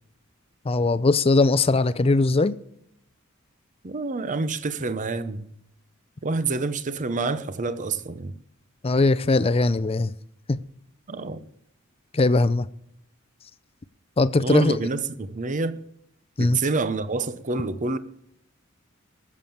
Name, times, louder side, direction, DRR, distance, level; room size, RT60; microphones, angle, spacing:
voice 1, 0.7-2.6 8.8-10.1 12.1-12.7 14.2-14.7 16.4-16.6, left 3 dB, 30° left, 0.5 m, -20 dB
voice 2, 3.8-5.5 6.2-8.4 11.1-11.5 14.4-15.8 16.4-18.0, right 3 dB, 35° right, 0.7 m, -28 dB
18.5 x 7.5 x 7.1 m
head